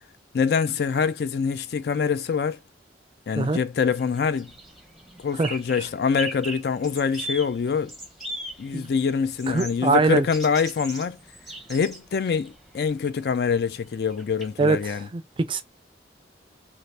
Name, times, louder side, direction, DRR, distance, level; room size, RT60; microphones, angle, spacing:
voice 1, 0.3-2.6 3.3-4.5 5.2-7.9 8.6-11.2 11.7-15.1, left 6 dB, 60° left, 0.3 m, -25 dB
sound 1, 3.8-14.9, right 1 dB, ahead, 0.7 m, -40 dB
voice 2, 9.5-10.2 14.6-15.6, right 3 dB, 30° right, 0.3 m, -23 dB
2.6 x 2.4 x 3.3 m
head